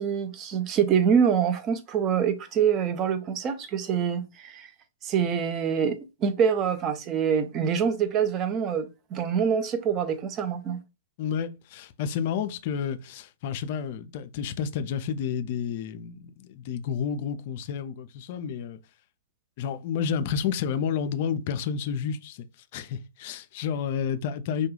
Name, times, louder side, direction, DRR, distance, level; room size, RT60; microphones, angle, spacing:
voice 1, 0.0-4.7 5.0-10.8, right 7 dB, 30° right, 0.4 m, -25 dB
voice 2, 11.2-18.8 19.6-24.7, left 7 dB, 50° left, 0.3 m, -30 dB
2.2 x 2.2 x 3.0 m
hypercardioid pair, 120°, 0 cm